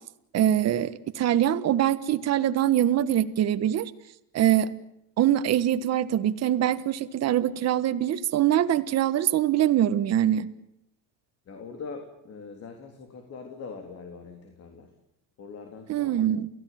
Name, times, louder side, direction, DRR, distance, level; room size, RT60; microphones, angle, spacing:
voice 1, 0.3-3.8 4.3-4.7 5.2-10.5 15.9-16.5, right 11 dB, 45° right, 12 dB, 1.5 m, -23 dB
voice 2, 11.5-14.9 15.4-16.1, left 4 dB, 40° left, 4 dB, 3.6 m, -42 dB
29.5 x 16.5 x 9.4 m, 0.80 s
cardioid pair, 145°, 37 cm